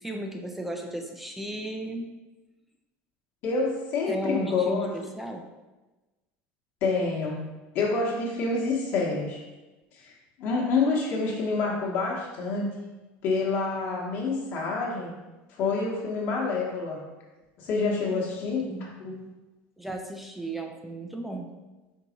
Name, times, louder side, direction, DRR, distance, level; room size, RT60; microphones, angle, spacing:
voice 1, 0.0-2.1 4.1-5.5 18.1-18.3 18.6-18.9 19.8-21.5, right 1 dB, 5° right, 3 dB, 0.5 m, -35 dB
voice 2, 3.4-4.9 6.8-7.4 7.7-9.4 9.9-10.1 10.4-12.7 13.2-15.1 15.5-17.0 17.6-18.7 19.0-19.1, left 4 dB, 50° left, -3 dB, 1.2 m, -27 dB
4.6 x 4.0 x 5.1 m, 1.1 s
cardioid pair, 150°, 5 cm